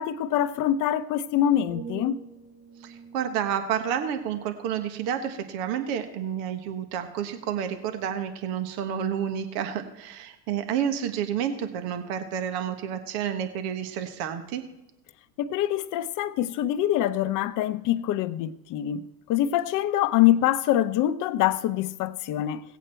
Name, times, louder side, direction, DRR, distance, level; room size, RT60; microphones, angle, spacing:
voice 1, 0.0-2.2 15.4-22.6, left 12 dB, 45° left, 0.8 m, -25 dB
sound 1, 1.7-5.6 6.1-6.4, right 5 dB, 25° right, 5.3 m, -46 dB
voice 2, 2.8-14.6, right 9 dB, 60° right, 1.4 m, -30 dB
17.5 x 8.3 x 4.4 m
hypercardioid pair, 95°, 43 cm